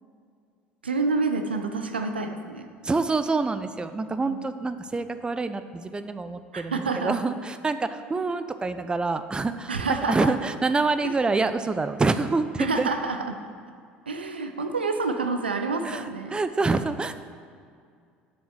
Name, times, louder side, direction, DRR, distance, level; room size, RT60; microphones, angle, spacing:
voice 1, 0.8-2.7 4.2-4.4 6.5-7.2 9.7-10.3 11.0-11.1 12.6-13.4 14.1-16.4, right 3 dB, 85° right, 6 dB, 0.7 m, -28 dB
voice 2, 2.8-9.7 10.1-12.9 15.8-17.2, right 3 dB, 15° right, 11 dB, 0.6 m, -26 dB
7.6 x 7.2 x 7.2 m, 2.2 s
figure-of-eight pair, 65°, 5 cm